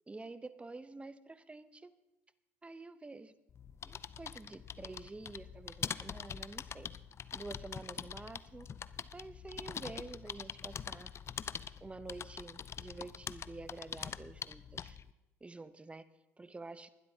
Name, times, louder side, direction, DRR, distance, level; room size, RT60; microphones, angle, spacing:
voice 1, 0.1-1.9 2.6-3.3 3.8-6.9 7.3-8.7 9.1-11.1 11.8-15.0 15.4-16.1 16.4-16.9, right 3 dB, 15° right, 14 dB, 0.7 m, -48 dB
sound 1, 3.5-15.1, left 7 dB, 35° left, 0.5 m, -44 dB
20.5 x 12.0 x 2.8 m, 1.0 s
hypercardioid pair, 70°, 8 cm